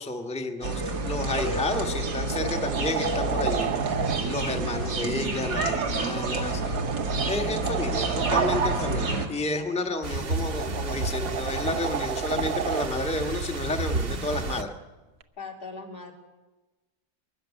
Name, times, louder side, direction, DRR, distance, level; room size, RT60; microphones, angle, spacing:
voice 1, 0.0-3.7 4.2-6.8 7.3-14.7, left 2 dB, 5° left, 4 dB, 1.3 m, -31 dB
sound 1, 0.6-9.3, right 3 dB, 85° right, 2.7 m, -28 dB
sound 2, 1.5-1.6 1.9-4.2 5.9-8.6 10.1-12.9 15.2-15.3, right 9 dB, 65° right, 1.4 m, -33 dB
sound 3, 10.0-14.6, right 3 dB, 50° right, 1.5 m, -31 dB
voice 2, 15.4-16.1, left 4 dB, 75° left, 1 dB, 3.7 m, -39 dB
22.0 x 13.5 x 9.9 m, 1.2 s
omnidirectional pair, 1.7 m